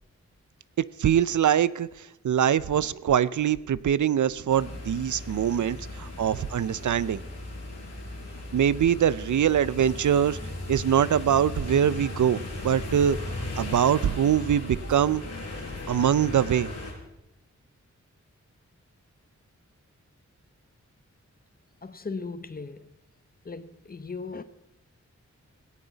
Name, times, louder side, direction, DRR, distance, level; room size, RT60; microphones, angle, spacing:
voice 1, 1.0-7.2 8.5-10.4 10.7-13.2 13.6-15.2 15.9-16.7, right 9 dB, 80° right, 0.6 m, -23 dB
sound 1, 4.5-16.9, left 2 dB, 60° left, 5.8 m, -37 dB
voice 2, 21.8-22.9 23.4-24.4, left 4 dB, 30° left, 0.8 m, -37 dB
17.5 x 17.5 x 4.0 m
wide cardioid pair, 120°, 29 cm